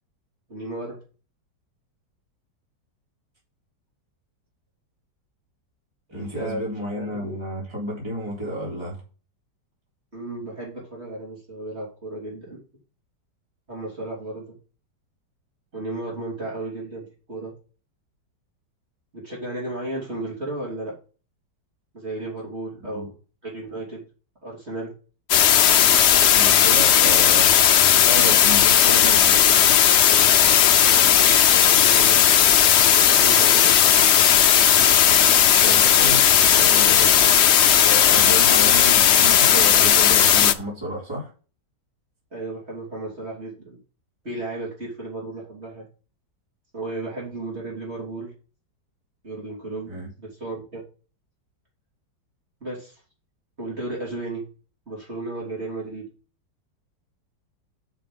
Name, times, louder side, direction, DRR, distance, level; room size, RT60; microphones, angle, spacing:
voice 1, 0.5-1.0 6.1-6.6 6.9-7.3 10.1-12.6 13.7-14.6 15.7-17.5 19.1-20.9 21.9-23.1 23.4-24.0 24.4-24.9 31.1-32.4 32.9-34.1 42.3-43.8 44.2-45.9 46.7-48.3 49.2-49.9 50.4-50.8 52.6-53.0 53.6-54.4 54.9-56.1, right 2 dB, 35° right, -5 dB, 3.7 m, -34 dB
voice 2, 6.1-9.0 22.9-23.1 26.3-29.4 35.6-37.2 37.5-41.3 49.9-50.1, equal, 15° right, -5 dB, 3.7 m, -31 dB
sound 1, 25.3-40.5, left 9 dB, 90° left, 0.6 m, -16 dB
6.7 x 6.3 x 5.2 m, 0.36 s
omnidirectional pair, 1.9 m